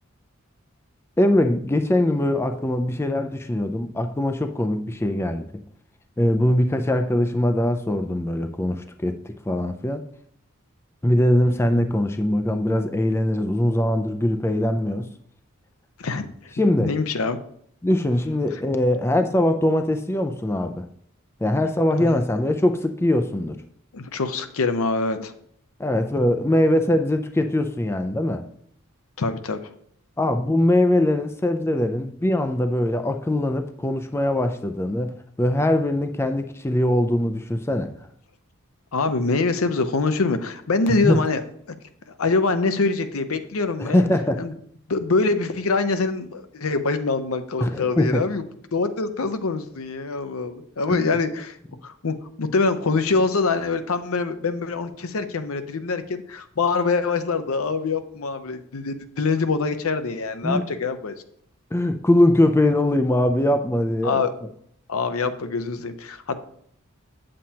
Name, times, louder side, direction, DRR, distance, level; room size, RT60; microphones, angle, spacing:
voice 1, 1.2-5.5 6.2-10.0 11.0-15.1 16.6-17.0 17.8-20.9 21.4-23.6 25.8-28.4 30.2-37.9 41.0-41.2 43.8-44.4 47.6-48.2 50.9-51.1 60.4-60.6 61.7-64.2, left 1 dB, 10° left, 0.4 m, -22 dB
voice 2, 16.0-17.4 22.0-22.2 23.9-25.3 29.2-29.6 38.9-41.4 42.2-44.0 44.4-44.5 44.9-48.4 48.7-51.6 51.8-61.1 64.0-64.3 64.9-66.4, left 4 dB, 75° left, 0.7 m, -24 dB
8.6 x 7.5 x 2.8 m
head